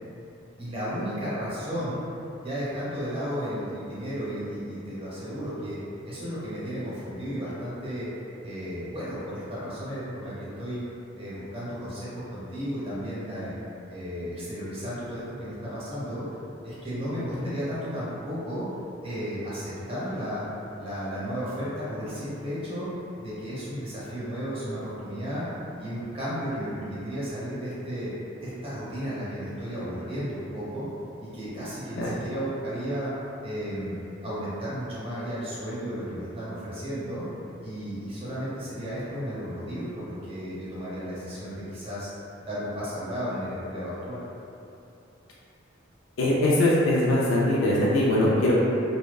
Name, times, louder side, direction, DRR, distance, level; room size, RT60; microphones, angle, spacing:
voice 1, 0.6-2.0 2.4-8.1 8.4-10.8 11.2-13.5 13.9-16.2 16.6-18.7 19.0-20.5 20.8-22.9 23.2-25.5 25.8-28.1 28.4-30.9 31.2-33.1 33.4-37.2 37.6-42.1 42.4-44.2, equal, 30° right, -10 dB, 0.7 m, -33 dB
voice 2, 46.2-48.5, left 1 dB, 75° left, -5 dB, 0.3 m, -21 dB
2.6 x 2.1 x 2.3 m, 2.7 s
head